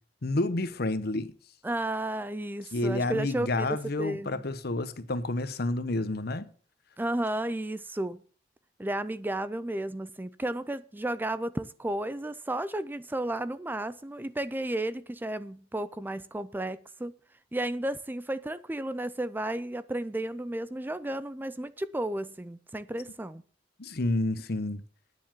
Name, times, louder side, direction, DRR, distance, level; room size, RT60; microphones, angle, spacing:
voice 1, 0.2-1.3 2.7-6.5 23.8-24.8, left 2 dB, 60° left, 0.9 m, -29 dB
voice 2, 1.6-3.7 4.0-4.4 7.0-8.2 8.8-17.1 17.5-23.4, right 1 dB, 10° right, 0.4 m, -33 dB
9.7 x 7.5 x 7.3 m
head